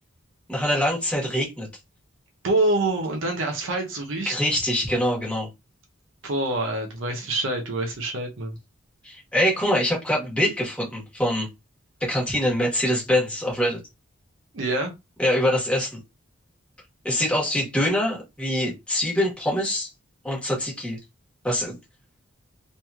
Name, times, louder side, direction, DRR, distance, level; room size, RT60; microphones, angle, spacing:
voice 1, 0.5-1.7 4.2-5.5 9.0-11.5 12.0-13.8 15.2-16.0 17.0-19.9 20.2-21.0 21.4-21.8, equal, 5° left, 1.2 m, -24 dB
voice 2, 2.4-4.3 6.2-8.6 14.5-14.9, right 2 dB, 65° right, 0.7 m, -26 dB
3.0 x 2.6 x 2.3 m
head